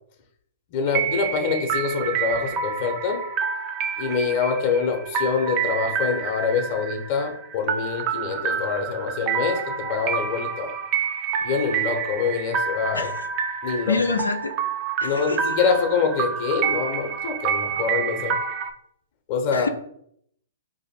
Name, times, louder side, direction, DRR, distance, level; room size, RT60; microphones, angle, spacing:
voice 1, 0.7-3.2 4.0-10.7 11.4-13.1 13.6-14.0 15.0-18.4 19.3-19.7, left 5 dB, 45° left, 4 dB, 0.7 m, -25 dB
sound 1, 0.9-18.7, right 7 dB, 35° right, 0.4 m, -28 dB
voice 2, 12.9-13.3 13.9-14.6 15.0-15.5 19.5-19.7, left 4 dB, 85° left, 7 dB, 0.4 m, -26 dB
2.6 x 2.5 x 4.1 m, 0.70 s
figure-of-eight pair, 120°, 0 cm